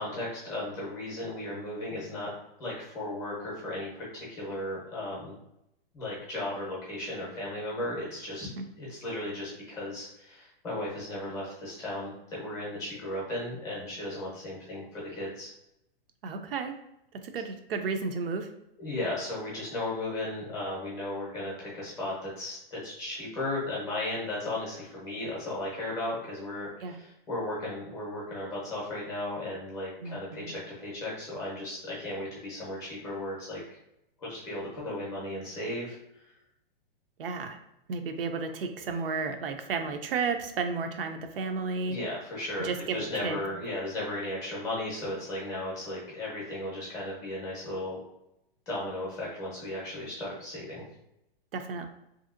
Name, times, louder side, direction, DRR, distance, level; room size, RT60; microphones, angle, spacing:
voice 1, 0.0-2.3 2.6-5.4 5.9-8.5 8.8-15.5 18.8-33.6 34.2-36.3 41.9-48.0 48.7-50.8, left 1 dB, 10° left, -6 dB, 0.6 m, -35 dB
voice 2, 16.2-16.8 17.2-18.5 26.8-26.9 30.0-30.5 37.2-37.6 37.9-42.0 42.6-43.4 51.5-51.9, right 4 dB, 70° right, 6 dB, 0.5 m, -32 dB
2.8 x 2.7 x 2.5 m, 0.84 s
hypercardioid pair, 170°, 30 cm